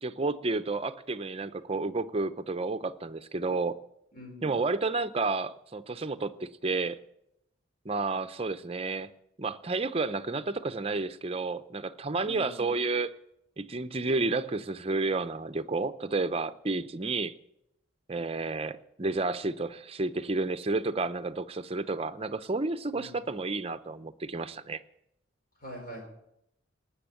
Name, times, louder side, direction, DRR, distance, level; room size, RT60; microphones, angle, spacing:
voice 1, 0.0-3.8 4.4-7.0 7.8-9.1 9.4-13.1 13.6-17.3 18.1-24.8, right 3 dB, 30° right, 0.6 m, -31 dB
voice 2, 4.1-4.5 12.2-12.7 22.9-23.1 25.6-26.1, equal, 50° left, 4.8 m, -43 dB
19.0 x 7.2 x 9.0 m
head